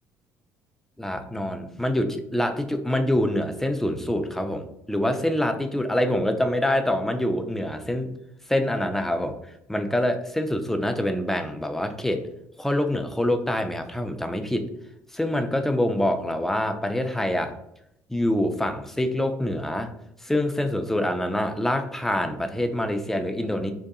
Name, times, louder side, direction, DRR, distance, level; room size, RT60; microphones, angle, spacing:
voice 1, 1.0-8.1 8.5-9.3 9.7-12.2 12.6-14.7 15.1-17.5 18.1-19.9 20.2-23.7, left 1 dB, 5° left, 6 dB, 0.4 m, -25 dB
2.7 x 2.3 x 2.3 m, 0.79 s
hypercardioid pair, 60°, 8 cm